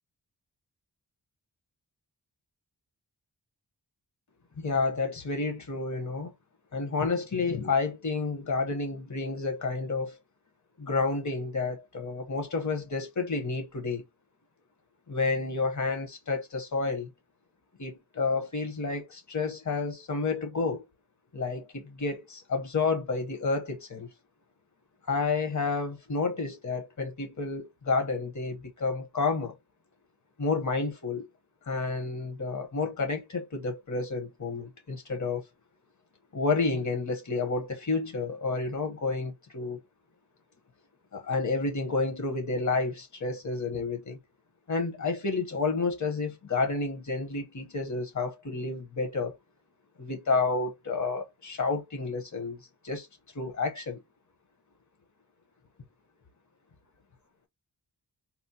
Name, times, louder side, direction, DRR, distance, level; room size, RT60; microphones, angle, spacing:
voice 1, 4.6-6.3 6.7-10.2 10.8-14.0 15.1-17.1 17.8-20.8 21.3-24.1 25.1-29.5 30.4-31.3 31.7-35.4 36.3-39.8 41.1-44.2 44.7-49.4 50.0-52.6 52.8-53.1 53.3-54.0, left 4 dB, 45° left, 0.9 m, -30 dB
4.2 x 2.0 x 2.7 m
wide cardioid pair, 100°, 40 cm